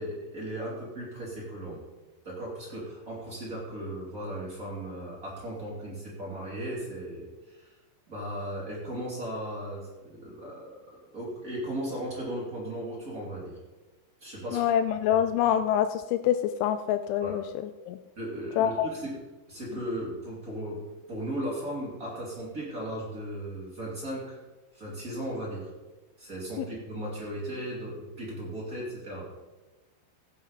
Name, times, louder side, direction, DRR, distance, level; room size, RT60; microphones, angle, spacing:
voice 1, 0.0-1.8 2.2-7.7 8.1-10.7 11.1-13.6 14.2-14.6 15.1-15.2 17.2-17.3 18.2-19.1 19.5-20.8 21.1-24.4 24.7-25.7 26.2-29.3, right 1 dB, 25° right, -5 dB, 2.0 m, -36 dB
voice 2, 14.5-18.0 18.6-18.9 26.6-26.7, left 10 dB, 85° left, 9 dB, 2.9 m, -26 dB
15.5 x 8.5 x 3.9 m, 1.2 s
omnidirectional pair, 5.4 m